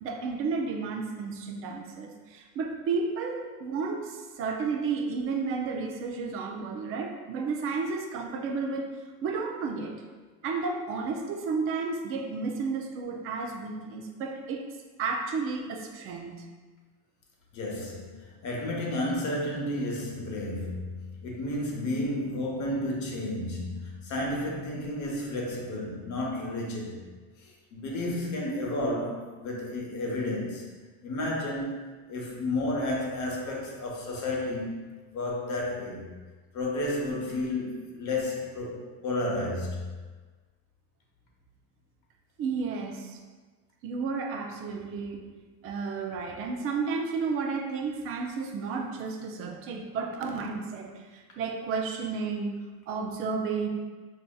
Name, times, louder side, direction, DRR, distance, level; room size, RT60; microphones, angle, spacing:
voice 1, 0.0-8.9 9.2-10.0 10.4-14.7 15.0-16.5 42.4-43.2 43.8-45.3 45.6-52.5 52.9-53.7, right 4 dB, 35° right, 3 dB, 0.4 m, -32 dB
voice 2, 17.5-27.0 27.4-30.7 31.0-34.8 35.1-36.1 36.5-39.8, left 1 dB, 40° left, -2 dB, 0.9 m, -32 dB
4.8 x 2.7 x 2.2 m, 1.4 s
supercardioid pair, 125°, 43 cm